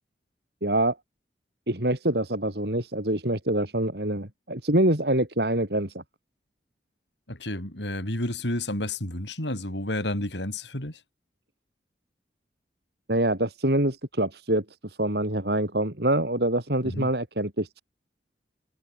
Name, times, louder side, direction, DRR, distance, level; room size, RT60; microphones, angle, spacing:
voice 1, 0.6-1.0 1.7-6.0 13.1-17.8, right 1 dB, 65° right, 4.0 m, -25 dB
voice 2, 7.3-11.0 16.8-17.1, left 1 dB, 85° left, 6.0 m, -31 dB
head